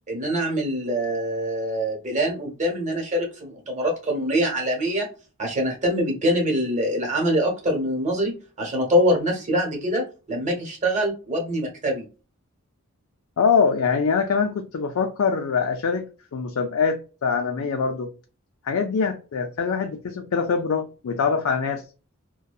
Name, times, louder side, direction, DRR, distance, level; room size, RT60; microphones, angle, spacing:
voice 1, 0.1-5.1 5.4-12.0, equal, 35° right, 1.1 m, -24 dB
voice 2, 13.4-18.1 18.6-21.8, left 5 dB, 70° left, 0.4 m, -24 dB
2.7 x 2.2 x 2.2 m
head